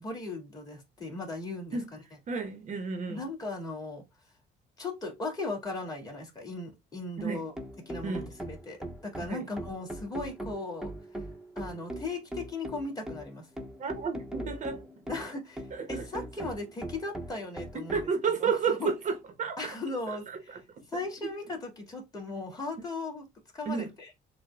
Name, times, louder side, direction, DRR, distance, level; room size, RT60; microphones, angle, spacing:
voice 1, 0.0-1.8 3.0-4.0 4.8-7.5 7.8-11.2 11.6-13.5 15.1-15.6 15.9-18.0 18.4-18.9 19.6-20.6 20.9-23.2 23.5-23.9, left 3 dB, 25° left, 2.1 m, -37 dB
voice 2, 2.3-3.2 7.2-7.4 8.0-8.3 9.3-9.5 13.8-14.9 15.7-16.1 17.7-19.6 20.1-20.8 21.2-21.3 23.6-23.9, right 5 dB, 45° right, 0.9 m, -32 dB
sound 1, 7.2-18.1, right 1 dB, 5° right, 1.0 m, -40 dB
6.7 x 2.3 x 2.2 m
cardioid pair, 110°, 17 cm